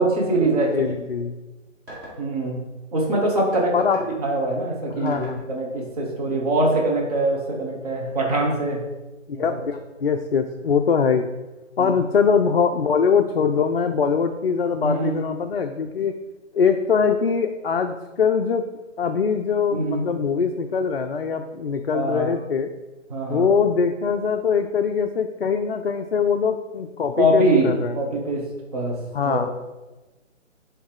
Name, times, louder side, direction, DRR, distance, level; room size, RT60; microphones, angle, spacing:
voice 1, 0.0-0.9 2.2-2.6 2.9-3.7 4.2-8.8 11.8-12.0 14.8-15.2 19.7-20.1 21.9-22.3 23.1-23.5 27.2-28.5 28.7-29.0 29.2-29.5, right 1 dB, 30° right, -2 dB, 1.4 m, -23 dB
voice 2, 0.6-1.4 3.7-4.0 4.9-5.4 9.3-11.3 11.8-16.1 16.5-18.6 19.0-22.7 23.3-28.0 29.1-29.5, left 6 dB, 50° left, 5 dB, 0.4 m, -22 dB
sound 1, 1.9-2.2 3.5-4.2 5.1-5.4 6.7-6.8, right 1 dB, 10° right, 1.5 m, -40 dB
7.0 x 3.3 x 4.7 m, 1.1 s
figure-of-eight pair, 145°, 38 cm